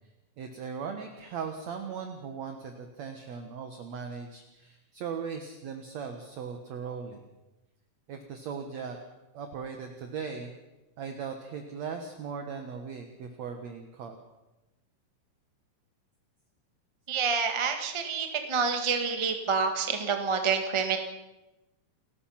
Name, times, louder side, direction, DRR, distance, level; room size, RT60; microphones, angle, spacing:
voice 1, 0.4-7.2 8.1-9.0 9.3-10.5 11.0-14.2, right 6 dB, 60° right, 5 dB, 2.4 m, -38 dB
voice 2, 17.1-21.0, right 5 dB, 20° right, 5 dB, 0.7 m, -28 dB
29.0 x 15.0 x 5.9 m, 1.0 s
omnidirectional pair, 4.0 m